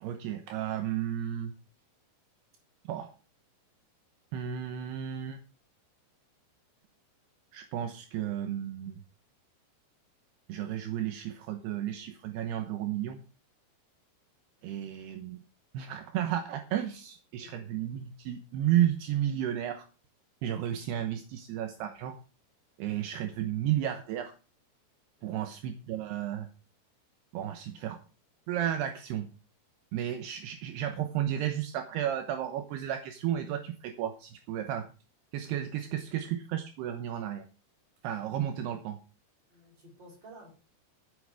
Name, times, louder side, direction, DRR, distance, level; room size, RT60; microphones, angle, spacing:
voice 1, 0.0-1.5 2.9-3.1 4.3-5.4 7.5-9.0 10.5-13.2 14.6-15.4 15.7-19.9 20.4-22.2 22.8-24.3 25.2-26.5 27.3-28.0 28.5-29.3 29.9-34.9 35.3-37.5 38.0-39.0, right 11 dB, 75° right, 7 dB, 2.9 m, -33 dB
voice 2, 17.4-17.7 25.2-25.4 39.5-40.5, right 1 dB, 25° right, 0 dB, 5.9 m, -53 dB
15.0 x 8.5 x 4.9 m, 0.34 s
omnidirectional pair, 5.1 m